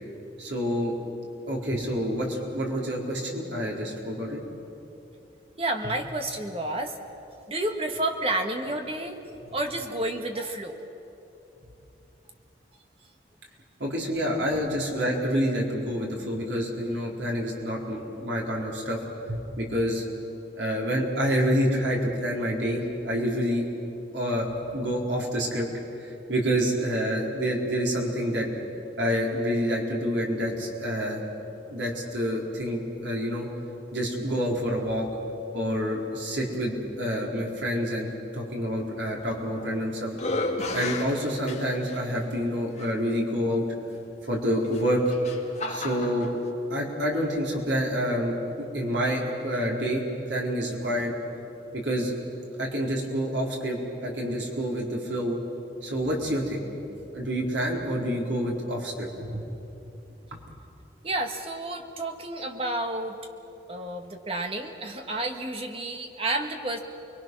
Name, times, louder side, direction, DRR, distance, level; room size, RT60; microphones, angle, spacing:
voice 1, 0.4-0.9 1.5-4.4 13.8-19.0 19.3-20.0 20.6-23.7 24.1-25.7 26.0-28.5 29.0-31.2 31.7-33.5 33.9-35.1 35.5-40.1 40.7-43.6 44.2-45.0 45.7-46.3 46.7-48.3 48.7-51.1 51.7-52.1 52.6-55.4 55.8-56.6 57.1-59.5, equal, 80° right, -2 dB, 4.3 m, -28 dB
voice 2, 5.6-7.0 7.4-9.2 9.5-10.8 61.0-63.2 63.7-66.8, right 2 dB, 30° right, 4 dB, 1.7 m, -30 dB
sound 1, 39.3-39.8 40.1-42.0 42.8-42.9 44.6-46.3, left 2 dB, 35° left, 2.2 m, -32 dB
30.0 x 22.5 x 6.3 m, 2.9 s
head